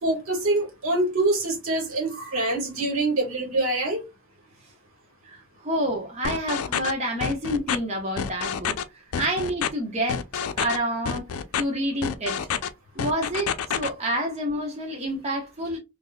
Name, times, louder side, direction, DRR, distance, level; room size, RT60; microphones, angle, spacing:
voice 1, 0.0-4.0, right 2 dB, 75° right, 1.7 m, -25 dB
voice 2, 5.2-11.2 11.6-12.4 12.9-15.8, equal, 30° right, 0.9 m, -28 dB
sound 1, 6.2-6.9 7.2-7.8 8.2-8.8 9.1-9.7 10.1-10.8 11.1-11.6 12.0-12.7 13.0-13.9, left 7 dB, 90° left, 0.4 m, -28 dB
4.3 x 2.9 x 2.2 m
head